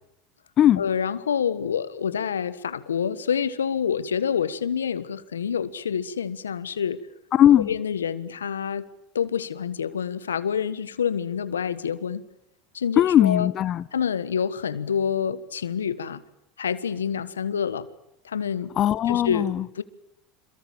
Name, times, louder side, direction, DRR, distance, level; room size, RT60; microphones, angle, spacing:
voice 1, 0.8-7.0 7.6-8.9 9.1-12.2 12.7-13.5 13.9-16.2 16.6-17.9 18.2-18.7 19.1-19.5 19.8-19.9, left 7 dB, 90° left, 16 dB, 1.4 m, -27 dB
voice 2, 7.3-7.7 13.0-13.8 18.8-19.6, left 11 dB, 45° left, 17 dB, 1.0 m, -19 dB
27.0 x 23.0 x 8.8 m, 0.78 s
hypercardioid pair, 85°, 0 cm